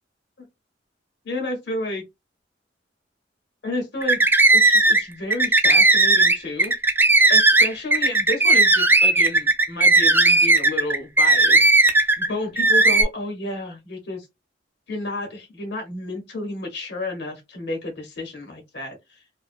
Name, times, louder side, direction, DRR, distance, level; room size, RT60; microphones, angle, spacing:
voice 1, 1.2-2.0 3.6-4.2 4.5-6.7 7.3-14.3 14.9-19.2, left 2 dB, 65° left, 0.8 m, -31 dB
sound 1, 4.0-5.0 5.3-12.3 12.6-13.0, right 2 dB, 10° right, 0.4 m, -16 dB
2.5 x 2.1 x 2.5 m
head